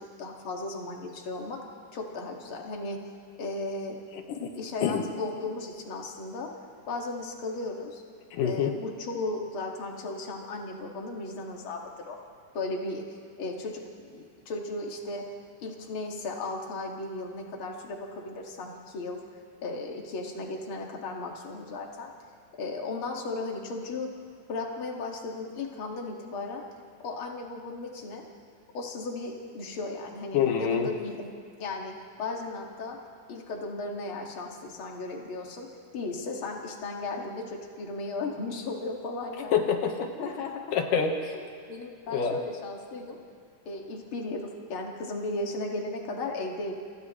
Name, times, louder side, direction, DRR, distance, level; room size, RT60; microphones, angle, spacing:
voice 1, 0.0-1.6 1.9-3.0 3.4-4.0 4.5-6.5 6.9-8.0 8.4-12.2 12.5-15.2 15.6-19.2 19.6-22.1 22.6-24.1 24.5-26.6 27.0-28.2 28.7-31.3 31.6-31.9 32.2-33.0 33.3-35.7 35.9-39.7 40.2-40.6 41.3-43.2 43.7-46.7, left 2 dB, 45° left, 0 dB, 2.7 m, -35 dB
voice 2, 4.1-4.5 4.8-5.0 8.3-8.7 30.3-30.9 39.5-40.1 40.7-41.2 42.1-42.4, left 7 dB, 85° left, 3 dB, 3.0 m, -26 dB
29.5 x 28.5 x 3.2 m, 2.2 s
omnidirectional pair, 3.7 m